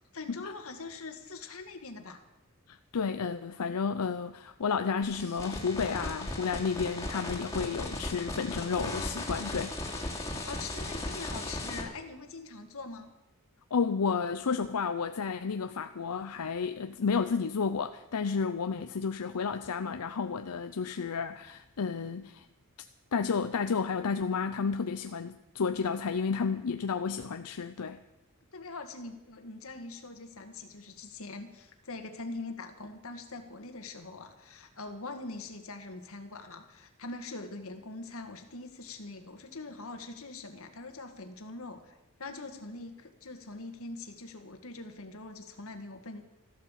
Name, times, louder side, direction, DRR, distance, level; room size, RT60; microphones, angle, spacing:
voice 1, 0.1-2.2 10.4-13.1 28.5-41.9 42.2-46.2, left 3 dB, 65° left, 6 dB, 1.9 m, -43 dB
voice 2, 2.7-9.7 13.7-22.5 23.1-28.0, left 5 dB, 90° left, 9 dB, 0.6 m, -31 dB
sound 1, 5.0-11.8, left 2 dB, 15° left, 3.0 m, -37 dB
14.5 x 12.0 x 7.4 m, 0.98 s
head